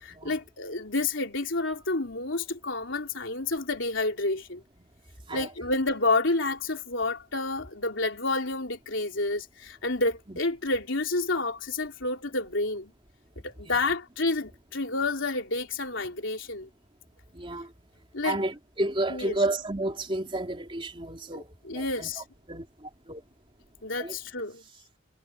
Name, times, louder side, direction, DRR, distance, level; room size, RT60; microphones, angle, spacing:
voice 1, 0.0-4.6 5.3-12.9 13.4-16.7 18.1-18.4 19.1-19.4 21.3-22.2 23.8-24.6, left 2 dB, 70° left, 3.5 m, -29 dB
voice 2, 17.3-17.7 18.2-22.1 22.5-23.2 24.0-24.2, right 2 dB, 25° right, 3.4 m, -31 dB
head